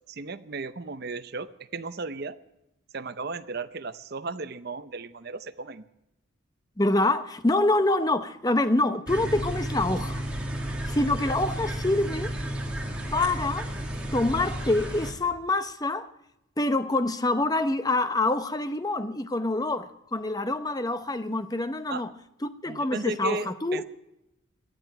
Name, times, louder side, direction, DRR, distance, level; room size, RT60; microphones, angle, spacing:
voice 1, 0.1-2.4 2.9-5.8 21.9-22.0 22.7-23.8, right 3 dB, 50° right, 0.7 m, -35 dB
voice 2, 6.8-10.2 10.9-12.3 13.1-13.7 14.1-16.1 16.6-22.1 22.4-23.8, left 2 dB, 20° left, 0.7 m, -26 dB
sound 1, 9.1-15.1, right 1 dB, 5° right, 2.1 m, -32 dB
18.5 x 12.5 x 5.9 m
head